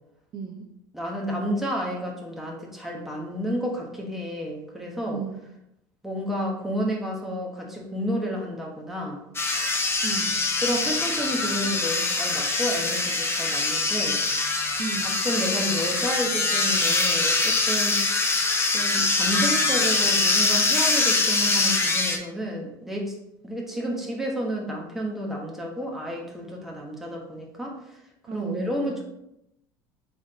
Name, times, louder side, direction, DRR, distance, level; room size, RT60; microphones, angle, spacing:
voice 1, 0.3-0.7 5.1-5.4 10.0-10.5 14.8-15.1 28.3-28.9, right 4 dB, 45° right, 2 dB, 0.6 m, -34 dB
voice 2, 0.9-5.2 6.0-9.2 10.6-14.2 15.2-18.0 18.7-23.1 23.4-27.9 28.3-29.0, equal, 5° right, -1 dB, 1.2 m, -31 dB
sound 1, 9.3-22.2, left 3 dB, 20° left, 0.8 m, -23 dB
3.9 x 3.5 x 3.7 m, 0.83 s
hypercardioid pair, 85°, 11 cm